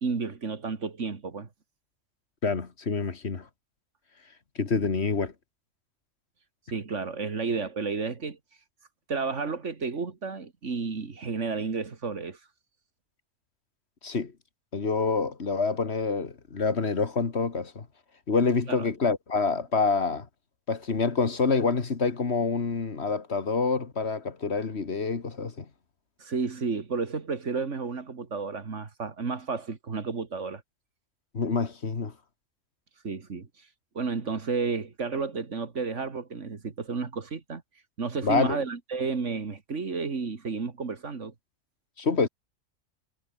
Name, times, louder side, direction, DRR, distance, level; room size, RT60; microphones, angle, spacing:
voice 1, 0.0-1.5 6.7-8.4 9.1-12.4 18.7-18.9 26.2-30.6 33.0-33.5 33.9-37.6 38.0-41.3, right 4 dB, 65° right, 2.3 m, -32 dB
voice 2, 2.4-3.5 4.6-5.3 14.0-14.3 14.7-17.9 18.3-20.3 20.7-25.7 31.3-32.1 38.2-38.6 42.0-42.3, left 4 dB, 55° left, 2.0 m, -27 dB
omnidirectional pair, 1.4 m